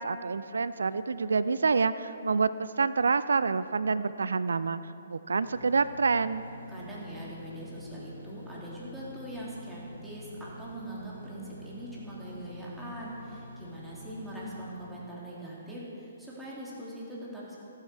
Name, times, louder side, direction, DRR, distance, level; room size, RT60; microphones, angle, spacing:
voice 1, 0.0-4.8 5.1-6.5, right 4 dB, 70° right, 14 dB, 0.4 m, -27 dB
sound 1, 5.4-14.8, equal, 90° right, 2.2 m, -47 dB
voice 2, 6.7-17.6, right 1 dB, 5° right, -7 dB, 3.3 m, -42 dB
14.5 x 12.5 x 4.8 m, 2.7 s
figure-of-eight pair, 125°, 0 cm